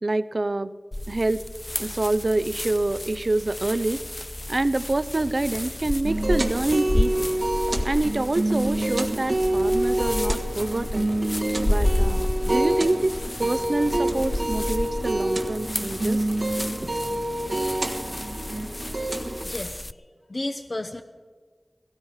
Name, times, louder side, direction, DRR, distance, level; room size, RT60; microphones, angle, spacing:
voice 1, 0.0-0.7 1.1-1.4 1.8-4.0 4.5-7.3 7.8-11.1 11.6-16.3, right 2 dB, 55° right, 15 dB, 0.6 m, -26 dB
sound 1, 0.9-19.9, left 1 dB, 30° left, 0.3 m, -31 dB
sound 2, 5.1-18.8, left 1 dB, 75° left, 3.0 m, -44 dB
String Percussive, 6.0-19.4, right 1 dB, 70° right, 1.5 m, -27 dB
voice 2, 19.4-19.9 20.3-21.0, left 2 dB, 55° left, 4 dB, 0.7 m, -32 dB
17.5 x 15.5 x 4.8 m, 1.5 s
wide cardioid pair, 60°, 0 cm